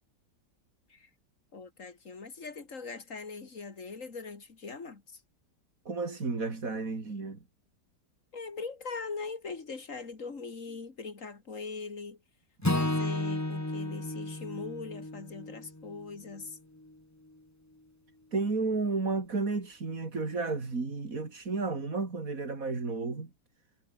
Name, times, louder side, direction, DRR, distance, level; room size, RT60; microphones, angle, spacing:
voice 1, 1.5-5.2 8.3-12.2 12.7-16.6, left 4 dB, 45° left, 3.0 m, -41 dB
voice 2, 5.9-7.4 18.3-23.3, right 3 dB, 50° right, 3.6 m, -32 dB
Acoustic guitar / Strum, 12.6-16.9, left 1 dB, 10° left, 1.6 m, -33 dB
omnidirectional pair, 1.8 m